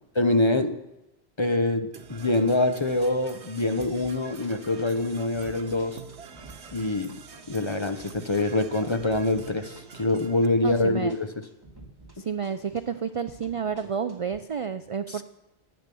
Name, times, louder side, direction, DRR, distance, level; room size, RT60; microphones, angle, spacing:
voice 1, 0.2-0.8 1.4-6.0 6.7-7.2 7.5-11.3 15.1-15.2, left 2 dB, 30° left, 8 dB, 0.7 m, -25 dB
Percussion / Brass instrument, 1.9-10.5, right 6 dB, 90° right, 1.3 m, -46 dB
sound 1, 3.8-4.2 4.4-12.2 12.4-14.4, right 2 dB, 20° right, 2.6 m, -50 dB
voice 2, 10.6-11.1 12.2-15.2, right 7 dB, 55° right, 10 dB, 0.3 m, -30 dB
13.5 x 9.0 x 6.9 m, 0.94 s
omnidirectional pair, 1.1 m